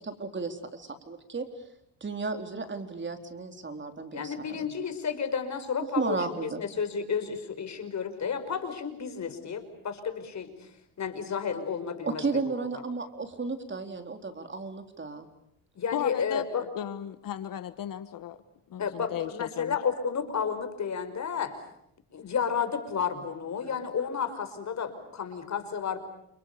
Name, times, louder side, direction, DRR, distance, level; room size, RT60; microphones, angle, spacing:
voice 1, 0.0-1.5 2.0-4.7 6.0-6.6 12.0-15.3, right 4 dB, 30° right, 7 dB, 4.1 m, -34 dB
voice 2, 4.1-10.7 11.0-12.5 15.8-16.6 18.8-21.6 22.1-26.0, left 6 dB, 50° left, 10 dB, 5.6 m, -32 dB
voice 3, 15.9-18.4 18.7-19.8, left 11 dB, 70° left, 12 dB, 1.5 m, -36 dB
29.5 x 29.0 x 6.9 m, 0.77 s
cardioid pair, 90°, 35 cm